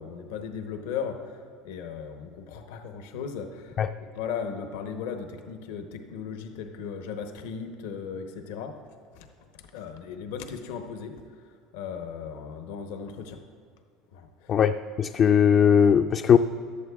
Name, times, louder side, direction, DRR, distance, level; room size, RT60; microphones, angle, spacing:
voice 1, 0.0-8.8 9.1-9.3 9.5-13.4 14.1-14.6, left 6 dB, 80° left, 6 dB, 0.8 m, -37 dB
voice 2, 14.5-16.4, left 7 dB, 40° left, 7 dB, 0.3 m, -19 dB
15.0 x 11.0 x 2.3 m, 2.3 s
supercardioid pair, 100°, 0 cm